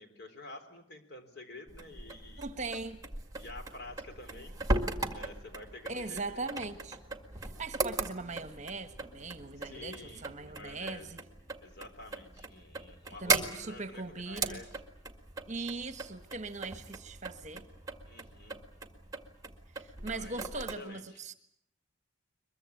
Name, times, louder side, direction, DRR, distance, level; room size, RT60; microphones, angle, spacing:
voice 1, 0.0-2.5 3.4-4.5 5.1-6.4 9.6-11.1 11.6-14.8 18.0-18.6 20.0-20.4 20.8-21.2, left 2 dB, 55° left, 3.9 m, -49 dB
sound 1, 1.7-20.8, right 3 dB, 20° right, 1.9 m, -38 dB
voice 2, 2.4-3.0 5.9-7.0 7.4-11.2 13.2-14.6 15.5-17.7 19.7-21.3, right 3 dB, 35° right, 1.4 m, -40 dB
23.0 x 22.0 x 8.6 m
head